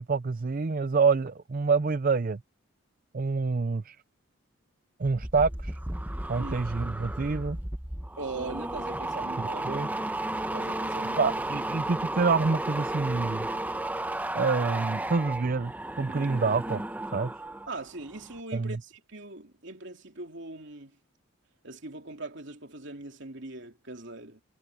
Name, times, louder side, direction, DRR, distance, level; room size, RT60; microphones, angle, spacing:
voice 1, 0.0-2.4 3.1-4.0 5.0-5.8 6.3-7.6 9.4-9.9 11.2-13.5 14.3-16.8 17.1-17.3 18.5-18.8, right 4 dB, 40° right, 0.5 m, -27 dB
sound 1, 5.0-17.7 18.0-18.4, right 1 dB, 10° right, 0.9 m, -33 dB
voice 2, 8.2-9.6 10.5-11.3 17.7-20.9 21.6-24.4, right 2 dB, 55° right, 3.0 m, -40 dB
head